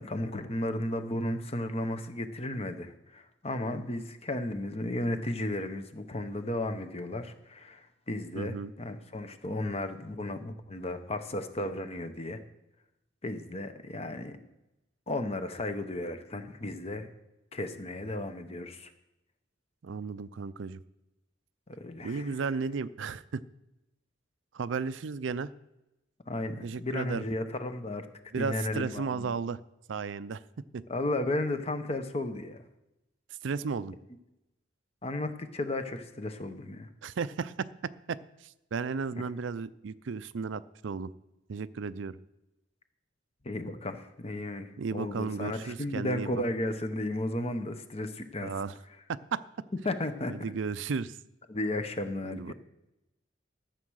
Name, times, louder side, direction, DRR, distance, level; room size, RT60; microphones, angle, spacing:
voice 1, 0.0-12.4 13.2-14.4 15.1-17.1 17.5-18.9 21.8-22.3 26.3-28.1 28.4-29.3 30.9-32.6 35.0-36.9 43.4-48.5 49.8-50.3 51.5-52.5, left 1 dB, 35° left, 9 dB, 0.9 m, -34 dB
voice 2, 8.4-8.7 19.8-20.8 22.0-23.4 24.5-25.5 26.6-27.2 28.3-29.6 29.9-30.4 30.7-30.8 33.4-34.0 37.0-37.7 38.1-41.1 41.5-42.2 44.8-46.3 48.4-48.8 49.1-49.4 50.3-51.2 52.2-52.5, right 5 dB, 75° right, 15 dB, 0.5 m, -34 dB
13.0 x 7.5 x 6.3 m, 0.94 s
head